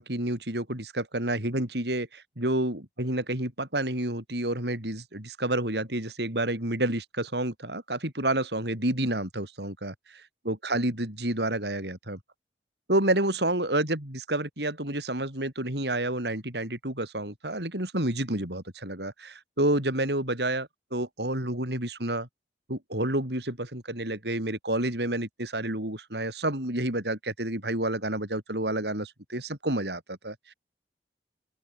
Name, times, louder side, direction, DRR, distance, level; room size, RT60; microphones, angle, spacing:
voice 1, 0.0-10.2 10.4-12.2 12.9-22.3 22.7-30.5, right 1 dB, 75° right, 6.6 m, -29 dB
open air
head